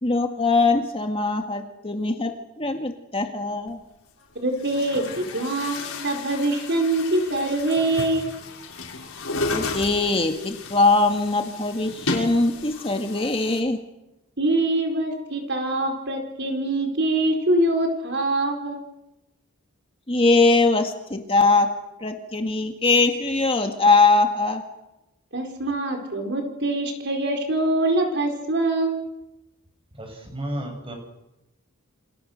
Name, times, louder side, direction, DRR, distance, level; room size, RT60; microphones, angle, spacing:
voice 1, 0.0-3.8 9.5-13.8 20.1-21.7 22.0-24.6, left 3 dB, 25° left, 4 dB, 2.0 m, -21 dB
Chatter / Gurgling / Tap, 3.7-3.8 4.5-13.6, left 3 dB, 70° left, 6.5 m, -33 dB
voice 2, 4.4-8.3 14.4-18.8 25.3-29.0, right 2 dB, 50° right, 4 dB, 4.7 m, -24 dB
voice 3, 30.0-30.9, right 1 dB, 25° right, 3 dB, 7.7 m, -32 dB
29.0 x 27.0 x 6.6 m, 0.95 s
head